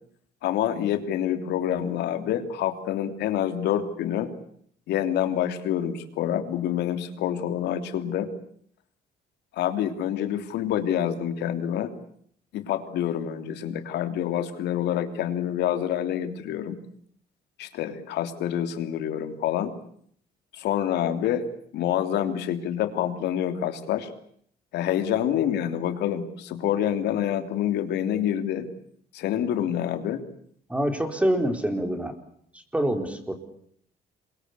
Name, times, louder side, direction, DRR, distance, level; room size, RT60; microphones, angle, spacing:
voice 1, 0.4-4.3 4.9-8.3 9.5-11.9 12.5-16.8 17.6-19.7 20.5-21.4 21.7-24.1 24.7-28.7 29.1-30.2, left 10 dB, 80° left, 9 dB, 3.3 m, -27 dB
voice 2, 30.7-32.1 32.7-33.3, right 1 dB, 5° right, 7 dB, 4.4 m, -25 dB
28.0 x 23.5 x 8.3 m, 0.67 s
cardioid pair, 115°, 17 cm